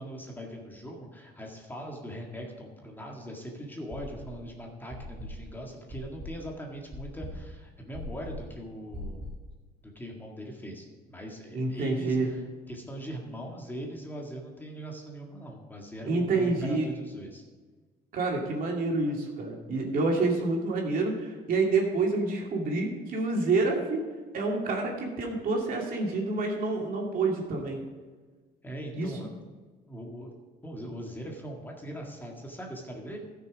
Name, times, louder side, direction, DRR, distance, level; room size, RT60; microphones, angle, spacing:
voice 1, 0.0-9.3 9.8-12.4 12.7-17.4 28.6-29.3 29.9-30.3 30.6-33.2, right 1 dB, 10° left, 0 dB, 1.8 m, -41 dB
sound 1, 3.9-4.5 4.9-9.5, left 1 dB, 30° right, 2.5 m, -41 dB
voice 2, 11.5-12.3 16.1-16.9 18.1-24.1 24.3-27.8 28.9-29.1, right 3 dB, 55° right, -1 dB, 2.6 m, -28 dB
13.5 x 6.4 x 5.1 m, 1.4 s
cardioid pair, 110°, 17 cm